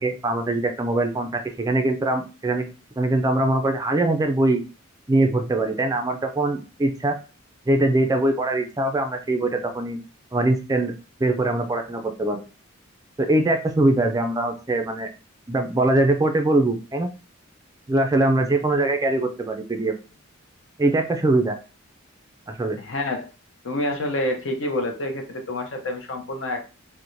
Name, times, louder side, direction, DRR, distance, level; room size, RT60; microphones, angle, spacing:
voice 1, 0.0-2.6 3.0-4.6 5.1-7.1 7.7-10.0 10.3-10.9 11.2-12.4 13.2-15.1 15.5-17.1 17.9-19.9 20.8-21.6 22.5-22.8, right 2 dB, 15° right, 6 dB, 0.3 m, -22 dB
voice 2, 22.8-23.3 23.6-26.6, left 1 dB, 60° left, 4 dB, 0.6 m, -27 dB
4.5 x 2.1 x 2.6 m, 0.34 s
head